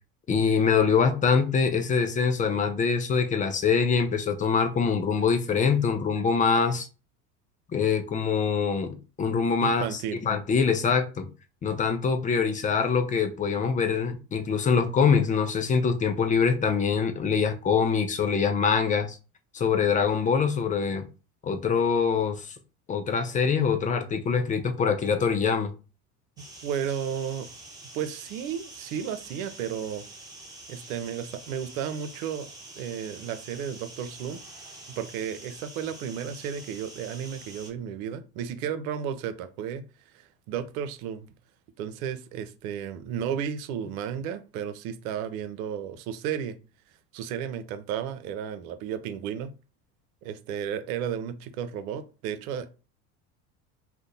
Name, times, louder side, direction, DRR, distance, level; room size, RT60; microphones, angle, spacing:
voice 1, 0.3-6.9 7.7-11.3 11.6-19.2 19.5-21.0 21.4-22.5 22.9-25.7, left 6 dB, 15° left, 0.5 m, -24 dB
voice 2, 9.6-10.2 26.6-27.5 27.9-30.0 30.7-32.5 32.8-34.4 35.0-39.8 40.1-41.3 41.8-46.6 47.1-49.5 50.2-52.7, right 8 dB, 65° right, 0.6 m, -33 dB
sound 1, 26.4-37.7, right 2 dB, 10° right, 1.0 m, -46 dB
2.7 x 2.1 x 3.8 m
hypercardioid pair, 70°, 47 cm